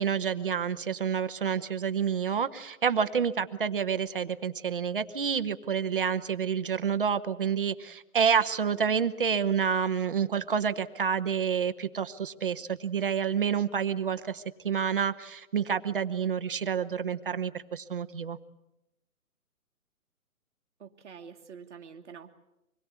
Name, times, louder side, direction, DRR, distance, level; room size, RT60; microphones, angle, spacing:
voice 1, 0.0-18.4, right 7 dB, 40° right, 10 dB, 0.9 m, -28 dB
voice 2, 20.8-22.3, right 6 dB, 55° right, 4 dB, 1.7 m, -47 dB
25.5 x 21.0 x 8.3 m, 0.93 s
hypercardioid pair, 175°, 42 cm